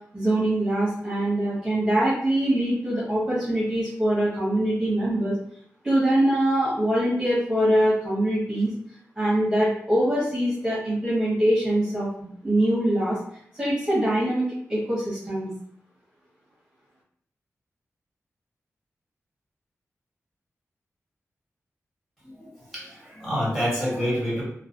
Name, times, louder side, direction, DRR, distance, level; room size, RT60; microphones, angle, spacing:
voice 1, 0.1-5.4 5.8-8.7 9.2-13.2 13.6-14.4 14.7-15.5, right 1 dB, 10° right, -10 dB, 0.9 m, -23 dB
voice 2, 22.2-24.4, equal, 5° left, -7 dB, 1.2 m, -28 dB
2.3 x 2.2 x 2.5 m, 0.65 s
wide cardioid pair, 155°, 5 cm